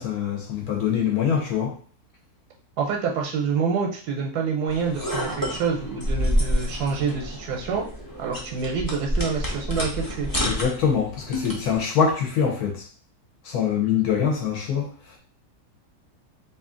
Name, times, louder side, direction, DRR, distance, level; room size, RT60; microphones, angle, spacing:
voice 1, 0.0-1.7 10.4-12.9 13.4-15.2, left 7 dB, 75° left, 1 dB, 1.4 m, -24 dB
voice 2, 2.8-7.9 8.2-10.3, right 5 dB, 85° right, 1 dB, 1.2 m, -27 dB
sound 1, 4.7-11.8, equal, 25° left, 0.5 m, -28 dB
3.0 x 2.7 x 3.7 m, 0.43 s
omnidirectional pair, 1.6 m